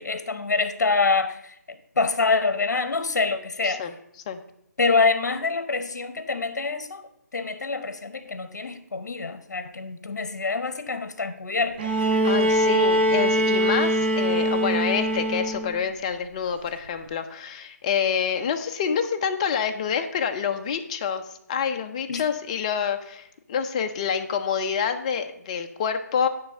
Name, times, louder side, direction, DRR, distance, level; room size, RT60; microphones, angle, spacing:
voice 1, 0.0-3.8 4.8-11.9 22.1-22.2, left 4 dB, 75° left, 11 dB, 0.8 m, -26 dB
Bowed string instrument, 11.8-15.8 17.1-17.2, equal, 35° right, 0.8 m, -22 dB
voice 2, 12.2-26.3, left 7 dB, 25° left, 7 dB, 0.5 m, -27 dB
9.7 x 3.2 x 5.9 m, 0.76 s
hypercardioid pair, 160°, 9 cm